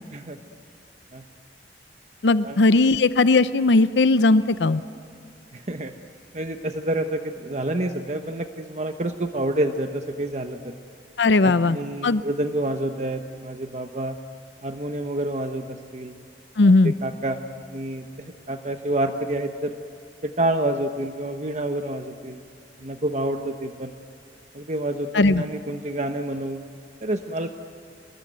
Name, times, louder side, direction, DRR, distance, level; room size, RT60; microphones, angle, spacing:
voice 1, 2.2-4.8 11.2-11.8 12.0-12.2 16.6-16.9 25.1-25.4, left 3 dB, 75° left, 13 dB, 0.7 m, -18 dB
voice 2, 5.5-5.9 6.3-10.7 11.4-14.2 14.6-16.2 16.6-17.4 17.7-19.8 20.2-22.4 22.8-23.9 24.5-26.6 27.0-27.5, right 1 dB, 40° right, 6 dB, 1.1 m, -28 dB
28.0 x 21.0 x 9.3 m, 2.5 s
head